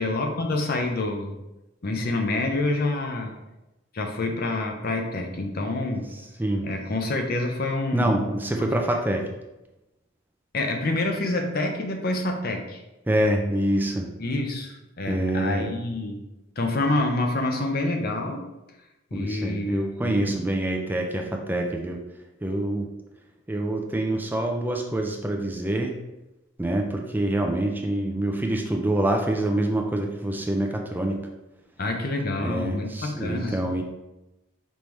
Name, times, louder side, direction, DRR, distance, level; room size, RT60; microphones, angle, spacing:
voice 1, 0.0-1.4 1.8-3.4 3.9-6.1 6.6-8.2 8.6-8.7 10.5-12.8 14.2-16.3 16.6-18.4 19.1-20.4 31.8-33.6, left 2 dB, 50° left, 4 dB, 0.6 m, -27 dB
voice 2, 7.9-9.2 13.1-14.1 15.1-15.6 19.1-22.0 22.4-22.9 23.5-25.9 26.6-31.2 32.4-33.8, right 1 dB, 10° right, 2 dB, 0.4 m, -26 dB
5.3 x 3.2 x 3.1 m, 0.98 s
head